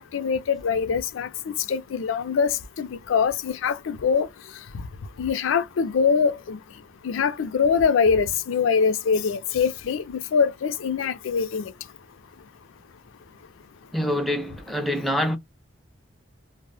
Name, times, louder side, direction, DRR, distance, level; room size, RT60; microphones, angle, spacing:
voice 1, 0.0-4.3 5.2-6.6 7.0-11.7, left 6 dB, 85° left, 0.4 m, -23 dB
voice 2, 13.9-15.4, equal, ahead, 0.3 m, -25 dB
2.1 x 2.0 x 3.1 m
head